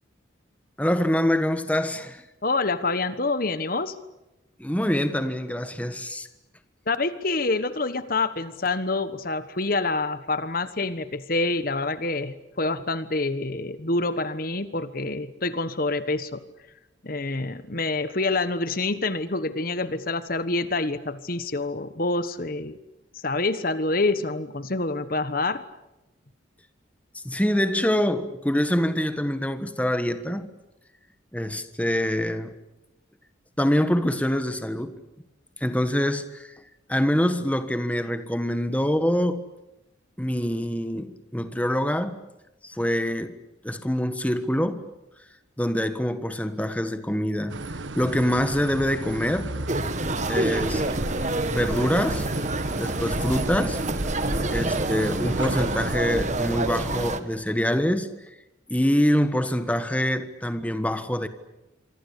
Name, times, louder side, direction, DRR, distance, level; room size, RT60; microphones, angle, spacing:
voice 1, 0.8-2.2 4.6-6.3 27.1-30.5 31.3-32.5 33.6-35.0 35.6-36.5 36.9-39.5 40.2-42.2 42.6-43.4 43.6-44.9 45.6-47.6 47.9-49.5 50.3-50.8 51.5-52.3 52.8-53.8 54.5-58.3 58.7-61.3, equal, 5° left, 1.4 m, -25 dB
voice 2, 2.4-3.9 6.9-16.4 17.0-22.8 23.2-25.6, left 3 dB, 45° left, 1.3 m, -27 dB
sound 1, 47.5-56.0, right 2 dB, 75° right, 1.5 m, -34 dB
sound 2, 49.7-57.2, right 2 dB, 40° right, 1.7 m, -27 dB
27.0 x 24.5 x 8.5 m
head